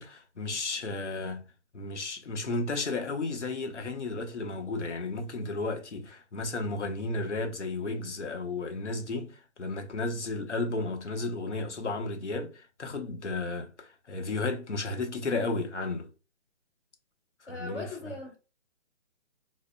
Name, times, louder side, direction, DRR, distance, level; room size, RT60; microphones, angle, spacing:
voice 1, 0.0-1.5 1.7-9.3 9.6-16.1 17.5-17.9, left 3 dB, 85° left, 0.9 m, -33 dB
voice 2, 17.5-18.4, left 2 dB, 55° left, 1.3 m, -39 dB
4.8 x 2.1 x 2.2 m
figure-of-eight pair, 145°, 34 cm